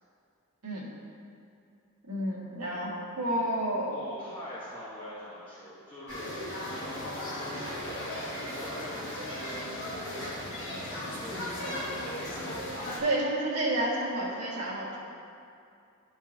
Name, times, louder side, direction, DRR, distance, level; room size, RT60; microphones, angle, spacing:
voice 1, 2.1-3.9 13.0-15.0, right 1 dB, 85° right, -6 dB, 1.7 m, -30 dB
voice 2, 3.9-6.4 6.6-10.4 11.1-12.5, equal, 20° left, -9 dB, 1.1 m, -44 dB
sound 1, 6.1-13.0, left 1 dB, 55° left, 1.6 m, -36 dB
13.0 x 5.1 x 2.7 m, 2.5 s
head